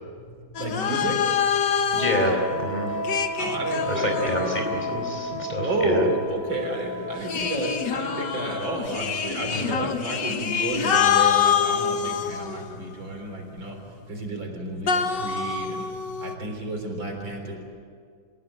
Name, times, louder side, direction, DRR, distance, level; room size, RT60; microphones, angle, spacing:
sound 1, 0.5-2.4 3.0-5.3 7.2-12.9 14.9-16.3, left 7 dB, 60° left, 1.9 m, -26 dB
voice 1, 0.6-1.3 3.3-4.4 5.6-13.8 14.1-15.9 16.2-17.6, right 2 dB, 70° right, 3 dB, 4.7 m, -31 dB
voice 2, 1.9-3.0 3.9-6.1 9.5-9.9, equal, 20° left, 1 dB, 4.6 m, -27 dB
Wind instrument woodwind instrument, 1.9-9.3, left 1 dB, 40° right, 5.4 m, -33 dB
28.5 x 17.0 x 9.2 m, 2.1 s
omnidirectional pair, 2.2 m